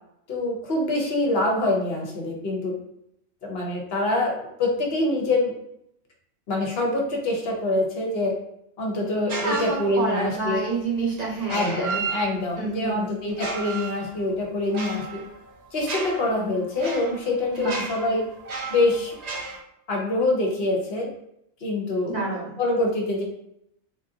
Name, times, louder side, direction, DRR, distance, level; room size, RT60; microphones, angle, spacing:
voice 1, 0.3-2.7 3.4-5.5 6.5-8.4 8.8-10.7 11.5-15.2 15.7-18.2 18.7-19.2 19.9-21.1 21.6-22.1 22.6-23.2, left 2 dB, 55° left, 0 dB, 0.9 m, -25 dB
sound 1, 9.3-10.2 11.4-12.7 13.3-19.6, right 4 dB, 65° right, 0.4 m, -34 dB
voice 2, 9.4-12.0 12.6-13.1 17.6-17.8 22.1-22.6, right 3 dB, 35° right, -5 dB, 0.9 m, -28 dB
3.5 x 2.5 x 2.6 m, 0.78 s
omnidirectional pair, 1.4 m